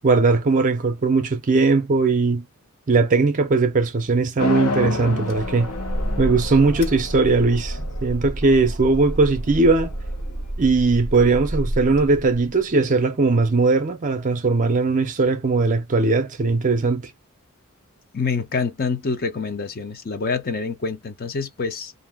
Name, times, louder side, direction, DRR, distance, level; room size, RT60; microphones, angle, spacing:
voice 1, 0.0-2.4 2.9-5.7 6.2-9.9 10.6-17.1, right 3 dB, 35° right, 0.5 m, -19 dB
sound 1, 4.4-10.5, left 3 dB, 85° left, 1.1 m, -31 dB
sound 2, 5.3-12.7, right 1 dB, 60° left, 1.6 m, -30 dB
voice 2, 18.1-21.9, left 4 dB, 45° left, 0.6 m, -26 dB
2.6 x 2.1 x 3.4 m
head